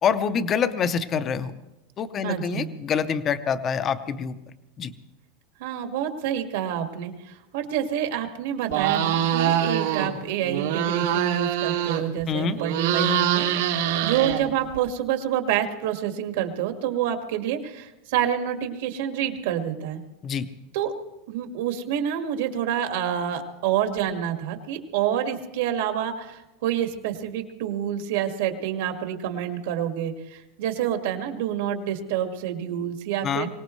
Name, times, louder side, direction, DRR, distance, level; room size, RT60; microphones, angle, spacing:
voice 1, 0.0-1.5 2.0-4.4 4.8-4.9 12.3-12.6 20.2-20.5 33.2-33.5, left 7 dB, 20° left, 11 dB, 0.6 m, -25 dB
voice 2, 2.2-2.7 5.6-20.0 20.7-20.9 21.3-33.5, right 10 dB, 65° right, 5 dB, 1.8 m, -28 dB
sound 1, 8.7-10.1 10.4-12.2 12.5-14.8, right 9 dB, 85° right, 2.5 m, -24 dB
23.5 x 18.5 x 3.2 m, 0.96 s
supercardioid pair, 180°, 0 cm